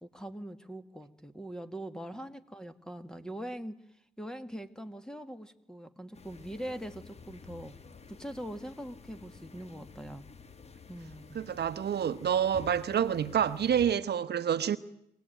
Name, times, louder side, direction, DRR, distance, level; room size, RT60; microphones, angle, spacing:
voice 1, 0.0-3.8 4.2-7.8 8.1-10.3 10.9-11.4, right 1 dB, 5° left, 1.8 m, -42 dB
sound 1, 6.1-13.9, left 5 dB, 30° left, 1.5 m, -51 dB
voice 2, 11.3-14.8, right 8 dB, 55° right, 1.1 m, -28 dB
25.0 x 18.5 x 9.2 m
cardioid pair, 90°, 20 cm